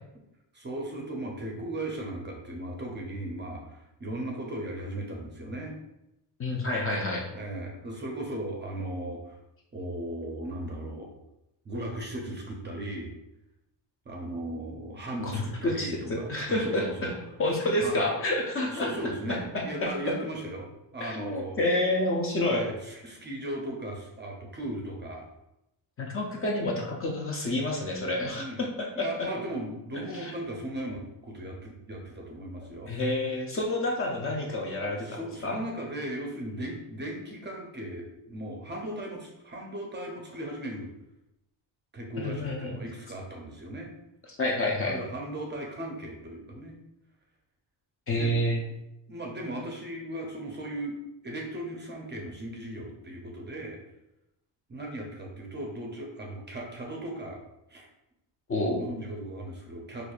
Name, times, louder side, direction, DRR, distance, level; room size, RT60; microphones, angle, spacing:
voice 1, 0.5-5.8 7.3-9.4 9.7-11.1 11.6-13.1 14.1-17.2 17.8-18.0 18.5-21.6 22.5-25.2 28.3-28.6 29.0-32.9 34.9-40.9 41.9-43.9 44.8-46.8 48.1-48.3 49.1-51.0 51.2-53.8 54.7-57.4 57.7-57.9 58.7-60.1, right 1 dB, 25° right, 0 dB, 0.5 m, -37 dB
voice 2, 6.4-7.2 15.2-17.1 17.4-18.9 19.3-19.9 21.0-22.6 26.0-29.3 29.9-30.3 32.9-35.1 35.4-35.6 42.2-42.8 44.4-44.9 48.1-48.6 58.5-58.8, left 1 dB, 30° left, -1 dB, 0.4 m, -29 dB
4.4 x 2.5 x 2.3 m, 0.89 s
cardioid pair, 145°, 43 cm